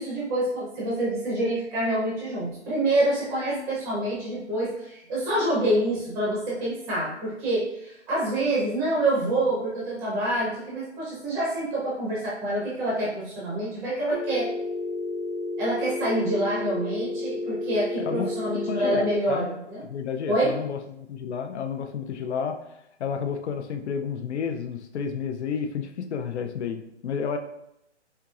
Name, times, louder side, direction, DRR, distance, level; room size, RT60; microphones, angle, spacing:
voice 1, 0.0-14.5 15.6-19.8 20.3-20.5, right 1 dB, 5° right, -7 dB, 0.6 m, -27 dB
Telephone, 14.1-19.1, left 2 dB, 30° left, 0.8 m, -31 dB
voice 2, 18.0-19.5 19.8-22.6 23.0-27.4, left 6 dB, 75° left, 6 dB, 0.6 m, -31 dB
4.5 x 3.8 x 2.4 m, 0.84 s
hypercardioid pair, 155°, 35 cm